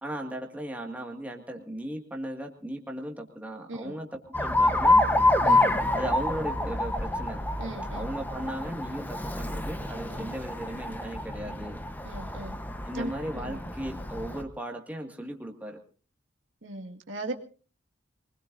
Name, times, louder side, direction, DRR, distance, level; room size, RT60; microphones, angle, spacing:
voice 1, 0.0-5.0 5.9-7.4 7.9-11.8 12.9-15.8, right 1 dB, 10° right, 1 dB, 2.0 m, -37 dB
Alarm, 4.3-14.4, left 2 dB, 10° left, 1.0 m, -27 dB
voice 2, 7.6-8.1 10.1-10.3 12.0-12.6 12.9-13.6 16.6-17.3, right 2 dB, 85° right, 3 dB, 2.0 m, -38 dB
23.5 x 20.5 x 2.7 m, 0.39 s
head